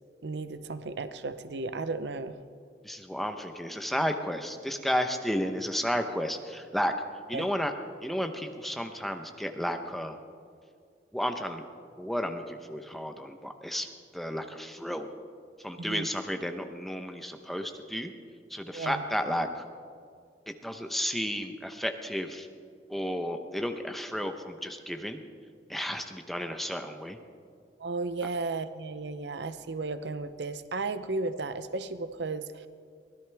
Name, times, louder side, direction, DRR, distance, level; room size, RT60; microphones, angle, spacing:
voice 1, 0.2-2.4 7.3-7.5 15.8-16.1 18.7-19.0 27.8-32.7, right 3 dB, 75° right, 11 dB, 0.7 m, -34 dB
voice 2, 2.8-6.9 7.3-7.7 8.0-10.2 11.1-11.6 12.0-13.9 14.1-15.1 15.6-18.1 18.5-19.6 20.5-22.5 22.9-25.2 25.7-27.2, equal, ahead, 6 dB, 0.9 m, -32 dB
23.5 x 17.0 x 3.5 m, 2.2 s
head